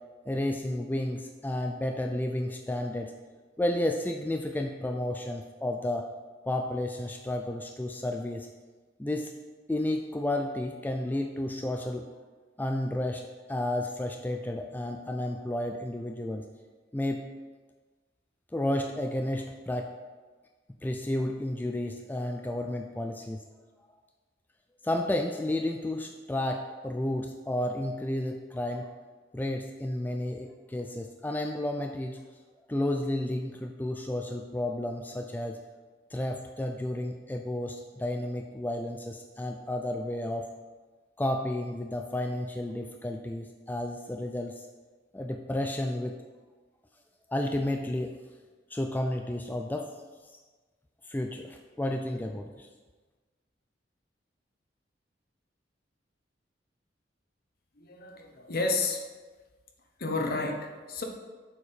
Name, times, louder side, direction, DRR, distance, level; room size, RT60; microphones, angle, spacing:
voice 1, 0.3-3.1 3.6-6.1 6.5-8.5 9.0-9.4 9.7-12.1 12.6-13.2 13.5-16.4 16.9-17.2 18.5-19.9 20.8-23.4 24.8-28.9 29.3-32.2 32.7-35.6 36.1-40.5 41.2-44.7 45.1-46.2 47.3-48.2 48.7-49.9 51.1-52.7, left 1 dB, 10° left, 3 dB, 0.3 m, -32 dB
voice 2, 57.8-59.0 60.0-61.0, left 3 dB, 55° left, 3 dB, 0.9 m, -31 dB
6.8 x 4.6 x 5.1 m, 1.3 s
head